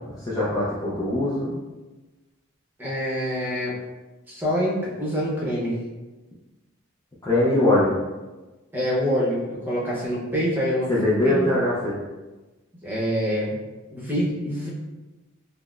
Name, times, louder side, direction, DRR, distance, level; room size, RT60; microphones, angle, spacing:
voice 1, 0.2-1.5 7.2-7.9 10.9-12.0, left 1 dB, 15° left, -8 dB, 0.4 m, -21 dB
voice 2, 2.8-3.8 4.3-5.8 8.7-11.5 12.8-13.6 13.9-14.7, equal, 10° right, -6 dB, 0.8 m, -26 dB
5.6 x 2.0 x 2.4 m, 1.2 s
head